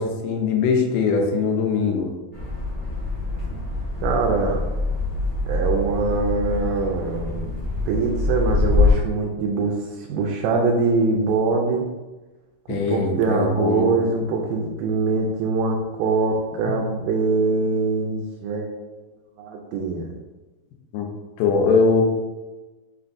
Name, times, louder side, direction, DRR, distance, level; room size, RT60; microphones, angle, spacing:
voice 1, 0.0-2.1 12.7-13.9 16.6-16.7 20.9-21.1 21.4-22.0, left 4 dB, 85° left, 2 dB, 2.3 m, -21 dB
sound 1, 2.3-8.9, left 3 dB, 45° left, 0.9 m, -24 dB
voice 2, 4.0-4.6 5.5-11.9 12.7-18.8 19.4-20.1, right 4 dB, 85° right, 0 dB, 2.1 m, -23 dB
7.1 x 2.6 x 2.5 m, 1.2 s
omnidirectional pair, 3.8 m